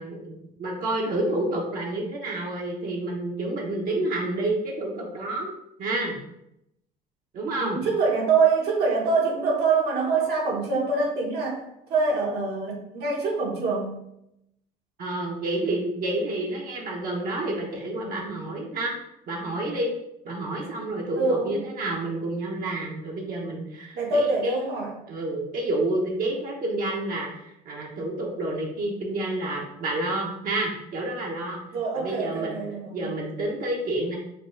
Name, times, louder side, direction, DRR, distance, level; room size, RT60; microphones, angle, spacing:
voice 1, 0.0-5.5 5.8-6.2 7.3-7.8 15.0-18.9 19.3-19.9 20.2-24.6 25.1-31.6 31.9-32.6 32.9-34.2, right 2 dB, 55° right, -2 dB, 1.0 m, -29 dB
voice 2, 7.6-11.6 11.9-13.9 21.1-21.6 23.9-24.9 31.7-33.2, right 4 dB, 75° right, -2 dB, 1.5 m, -25 dB
5.8 x 2.3 x 3.3 m, 0.81 s
cardioid pair, 110°, 17 cm